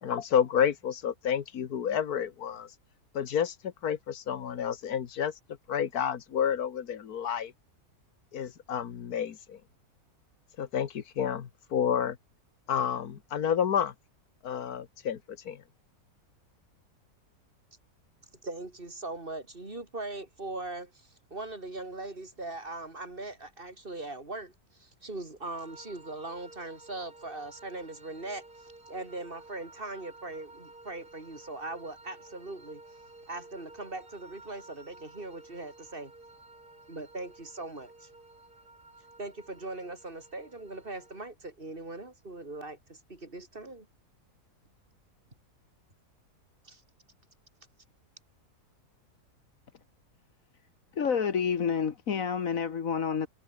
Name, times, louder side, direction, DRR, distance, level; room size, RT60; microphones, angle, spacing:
voice 1, 0.0-2.7 3.1-5.3 5.7-7.5 8.3-9.6 10.6-12.2 12.7-13.9 14.4-15.6, left 8 dB, 75° left, 1.8 m, -30 dB
voice 2, 18.4-33.0 33.3-36.1 36.9-38.1 39.2-43.9 46.6-46.8, right 2 dB, 35° right, 3.9 m, -40 dB
sound 1, 25.4-41.3, right 2 dB, 75° right, 6.6 m, -53 dB
voice 3, 50.9-53.3, left 6 dB, 60° left, 1.8 m, -29 dB
omnidirectional pair, 1.7 m